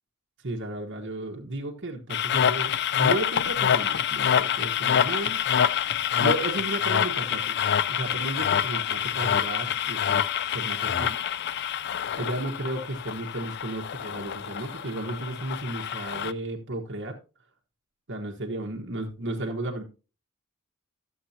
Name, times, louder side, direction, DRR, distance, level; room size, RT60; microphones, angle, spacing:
voice 1, 0.4-5.4 6.2-7.6 7.9-10.2 10.5-11.2 12.1-17.2 18.1-19.8, right 1 dB, 55° right, 1 dB, 1.2 m, -33 dB
sound 1, 2.1-16.3, left 9 dB, 50° left, 0.4 m, -26 dB
13.0 x 7.7 x 2.8 m, 0.32 s
head